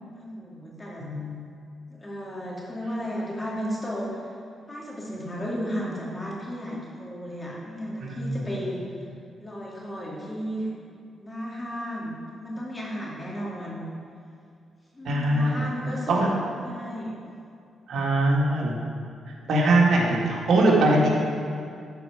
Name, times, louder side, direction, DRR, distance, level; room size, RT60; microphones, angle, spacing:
voice 1, 0.1-1.0 1.9-4.4 4.7-8.8 9.4-10.7 11.2-13.8 14.9-16.4 16.6-17.1, equal, 25° left, -5 dB, 2.5 m, -34 dB
voice 2, 1.0-1.4 8.0-8.3 15.0-15.5 16.1-16.3 17.9-18.8 19.5-21.1, right 2 dB, 70° right, -3 dB, 1.9 m, -21 dB
13.0 x 4.7 x 5.0 m, 2.4 s
cardioid pair, 95°, 0 cm